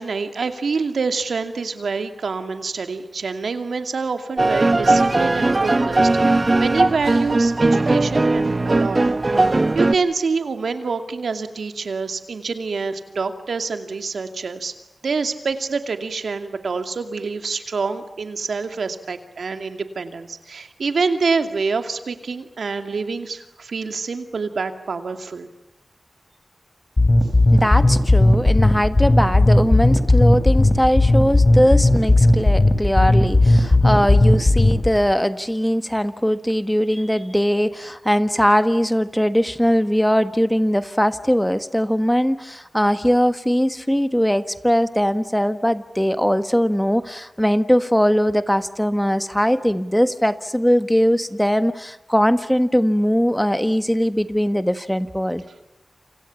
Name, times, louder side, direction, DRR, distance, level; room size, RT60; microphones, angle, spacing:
voice 1, 0.0-9.0 9.7-14.7 15.0-25.5, right 4 dB, 90° right, 7 dB, 2.5 m, -26 dB
sound 1, 4.4-9.9, right 2 dB, 40° right, 1.2 m, -18 dB
sound 2, 27.0-35.0, left 2 dB, 35° left, 4.7 m, -15 dB
voice 2, 27.5-55.4, equal, 5° left, 11 dB, 1.5 m, -20 dB
29.0 x 27.5 x 7.2 m, 0.96 s
wide cardioid pair, 75°, 0 cm